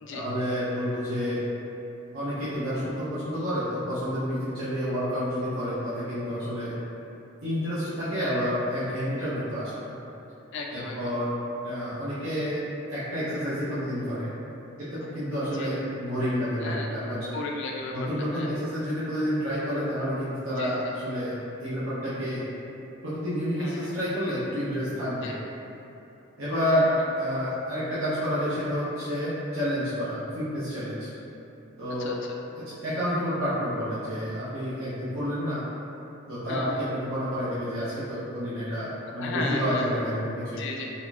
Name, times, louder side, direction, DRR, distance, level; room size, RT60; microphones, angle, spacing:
voice 1, 0.1-1.4 2.1-6.7 7.4-9.8 10.7-11.3 11.6-12.6 12.9-14.3 14.8-17.2 17.9-21.3 21.6-22.4 23.0-25.3 26.4-26.9 27.2-31.1 31.8-32.1 32.7-35.6 36.3-40.6, equal, 70° right, -12 dB, 0.6 m, -29 dB
voice 2, 10.5-11.0 15.6-15.7 16.6-16.9 17.3-18.5 20.6-20.7 23.6-23.9 25.2-25.3 26.7-27.1 32.0-32.2 36.5-36.8 39.2-39.9 40.6-40.9, left 3 dB, 60° left, 0 dB, 0.3 m, -35 dB
3.6 x 2.5 x 2.3 m, 2.9 s
head